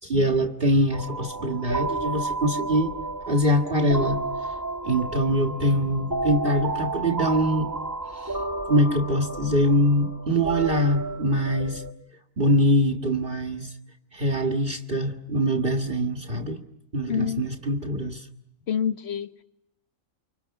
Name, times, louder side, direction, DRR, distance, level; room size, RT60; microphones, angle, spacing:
voice 1, 0.0-2.9 3.3-4.2 4.8-7.7 8.1-8.4 8.7-11.8 12.4-13.7 14.1-16.6 16.9-18.3, equal, 40° right, 2.1 m, -23 dB
sound 1, 0.9-11.9, right 2 dB, 15° right, 1.6 m, -32 dB
voice 2, 17.1-17.4 18.7-19.4, left 8 dB, 55° left, 1.6 m, -27 dB
29.5 x 26.5 x 5.9 m
omnidirectional pair, 1.4 m